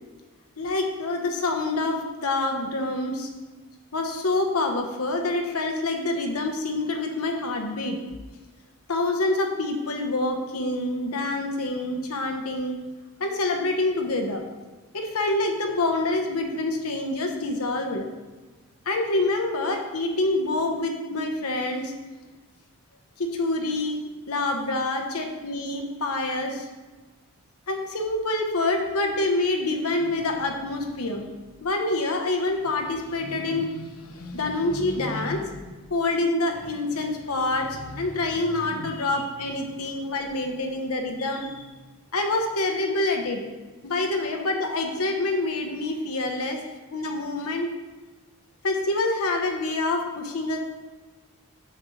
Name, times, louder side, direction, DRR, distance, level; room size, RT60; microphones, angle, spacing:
voice 1, 0.6-3.3 3.9-8.0 8.9-12.8 13.2-14.4 14.9-18.1 18.9-21.9 23.2-24.0 24.3-26.7 27.7-31.2 31.6-41.6 42.1-43.4 43.8-46.6 46.9-47.7 48.6-50.6, left 2 dB, 85° left, 3 dB, 1.0 m, -26 dB
7.3 x 6.7 x 3.2 m, 1.3 s
head